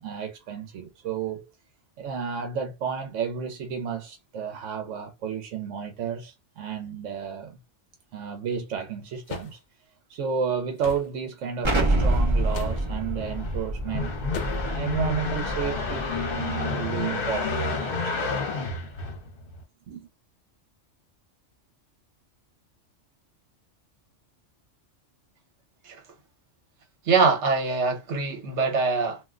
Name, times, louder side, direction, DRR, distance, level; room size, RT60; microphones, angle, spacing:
voice 1, 0.0-1.5 2.0-7.6 8.1-9.6 10.1-14.1 14.6-18.3 19.9-20.1, right 7 dB, 90° right, 1.0 m, -32 dB
sound 1, 9.3-9.6 10.8-11.1 12.5-12.8 14.3-14.8, left 6 dB, 75° left, 0.9 m, -37 dB
Explosion, 11.6-16.3, right 1 dB, 30° right, 0.7 m, -27 dB
sound 2, 12.3-19.6, left 4 dB, 50° left, 1.0 m, -31 dB
voice 2, 27.1-29.2, right 4 dB, 70° right, 1.2 m, -23 dB
2.6 x 2.1 x 3.6 m
omnidirectional pair, 1.2 m